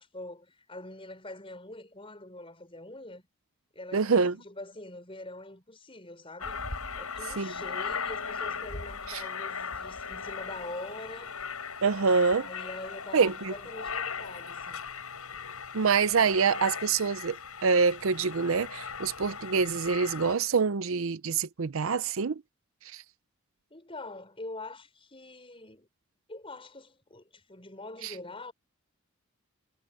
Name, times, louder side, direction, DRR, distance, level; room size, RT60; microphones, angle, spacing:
voice 1, 0.0-3.3 3.7-6.6 7.0-11.4 12.4-14.8 23.7-25.9 26.3-28.5, left 2 dB, 25° left, 5.9 m, -44 dB
voice 2, 3.9-4.4 7.4-7.5 9.1-9.2 11.8-12.5 13.1-13.5 15.7-17.4 17.6-22.4 22.8-23.0 28.0-28.1, right 5 dB, 65° right, 0.6 m, -26 dB
Aircraft, 6.4-20.3, left 5 dB, 85° left, 6.1 m, -38 dB
head